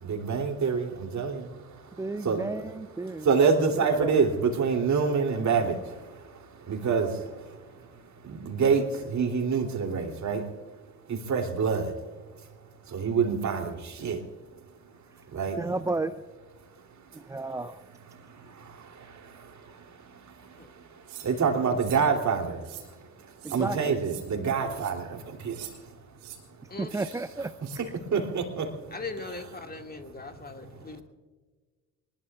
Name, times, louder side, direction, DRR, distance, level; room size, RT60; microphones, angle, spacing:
voice 1, 0.0-1.5 2.0-2.4 3.0-7.4 8.2-10.5 11.1-12.0 12.9-14.3 15.3-15.6 18.2-20.6 21.2-22.6 23.5-25.7 27.8-28.7, right 5 dB, 40° right, 3 dB, 3.0 m, -27 dB
voice 2, 2.0-3.3 4.0-4.1 15.6-16.1 17.1-17.8 23.4-24.0 26.8-27.5, right 3 dB, 10° right, 12 dB, 0.4 m, -32 dB
sound 1, 21.1-21.3 21.8-22.1 22.6-22.9 23.4-23.6 24.0-24.2 24.8-24.9 25.5-25.7 26.2-26.4 26.9-27.1 27.6-27.8, right 12 dB, 65° right, 2.8 m, -43 dB
voice 3, 28.9-31.0, left 4 dB, 20° left, 5 dB, 2.1 m, -39 dB
24.5 x 20.5 x 2.4 m, 1.4 s
figure-of-eight pair, 50°, 43 cm